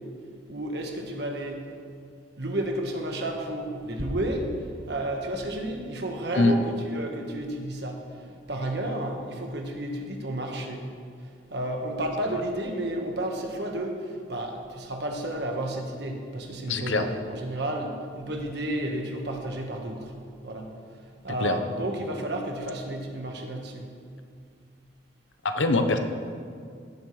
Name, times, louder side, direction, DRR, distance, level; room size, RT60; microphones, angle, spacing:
voice 1, 0.5-1.8 2.4-11.0 11.5-20.1 20.4-20.7 21.2-24.0, right 1 dB, 60° right, 2 dB, 1.4 m, -32 dB
voice 2, 16.7-17.1 21.4-21.6 25.4-26.0, left 3 dB, 75° left, 7 dB, 0.9 m, -23 dB
17.0 x 8.9 x 3.3 m, 2.2 s
head